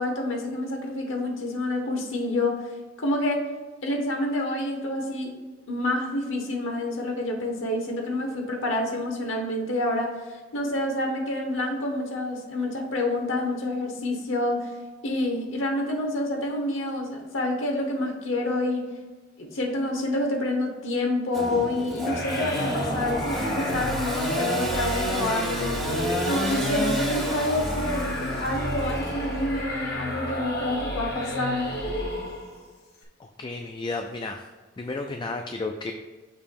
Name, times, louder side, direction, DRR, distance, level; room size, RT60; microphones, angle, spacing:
voice 1, 0.0-2.6 3.0-3.4 3.8-5.3 5.7-14.7 15.0-18.9 19.4-25.8 26.3-31.7, left 1 dB, 85° left, 2 dB, 1.1 m, -28 dB
Engine / Sawing, 21.3-29.6, equal, ahead, 1.5 m, -31 dB
sound 1, 22.0-32.6, left 1 dB, 55° left, 1.3 m, -31 dB
voice 2, 33.4-34.4 34.8-35.9, left 3 dB, 25° left, 4 dB, 0.3 m, -32 dB
6.6 x 2.9 x 5.3 m, 1.3 s
head